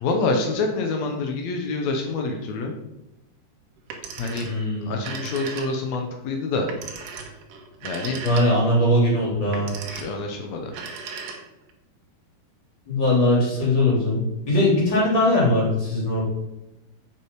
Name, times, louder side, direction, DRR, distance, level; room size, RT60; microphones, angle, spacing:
voice 1, 0.0-2.7 4.2-4.5 4.8-6.7 7.8-8.2 9.3-9.5 9.9-10.7, left 3 dB, 85° left, 3 dB, 1.5 m, -27 dB
Telephone, 3.8-4.6 4.9-6.0 6.7-8.8 9.4-10.2 10.7-11.7, right 5 dB, 65° right, 2.4 m, -36 dB
voice 2, 4.4-5.0 8.2-9.7 12.9-16.2, left 1 dB, 30° left, -6 dB, 3.8 m, -20 dB
8.2 x 6.1 x 4.8 m, 0.94 s
omnidirectional pair, 4.6 m